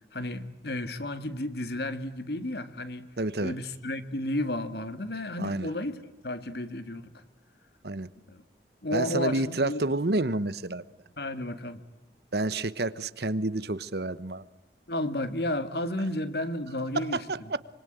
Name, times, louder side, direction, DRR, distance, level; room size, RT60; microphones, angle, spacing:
voice 1, 0.1-3.1 3.4-7.1 8.3-8.4 8.8-9.8 11.2-11.8 14.9-17.2, left 1 dB, 65° left, 2.1 m, -32 dB
voice 2, 3.2-3.5 5.4-5.7 7.8-8.1 8.9-10.8 12.3-14.4 17.1-17.6, right 2 dB, 65° right, 1.1 m, -29 dB
25.5 x 25.0 x 9.0 m
head